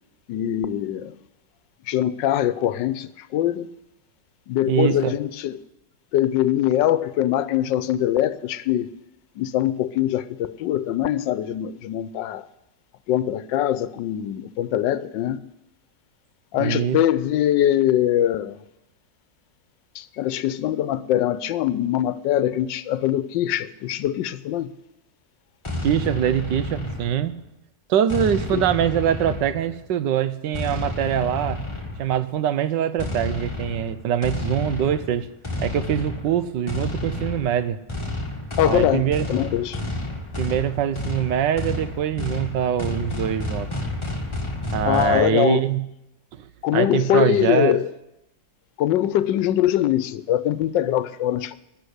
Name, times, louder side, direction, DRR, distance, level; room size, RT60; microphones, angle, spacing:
voice 1, 0.3-1.2 1.9-3.7 4.5-5.6 6.1-8.9 9.4-12.5 13.1-15.4 16.5-18.6 19.9-24.7 28.5-28.6 38.6-39.8 44.9-45.7 46.6-47.9 48.8-51.6, left 12 dB, 85° left, 1.4 m, -22 dB
voice 2, 4.7-5.1 16.6-17.0 25.8-27.3 27.9-31.6 32.0-35.3 35.6-37.8 38.6-39.3 40.4-43.7 44.7-45.8 46.7-47.8, right 10 dB, 85° right, 1.4 m, -23 dB
sound 1, 25.6-27.4 28.1-29.8 30.5-32.2 33.0-45.3, left 2 dB, 15° left, 1.7 m, -30 dB
14.5 x 6.8 x 9.9 m
omnidirectional pair, 1.9 m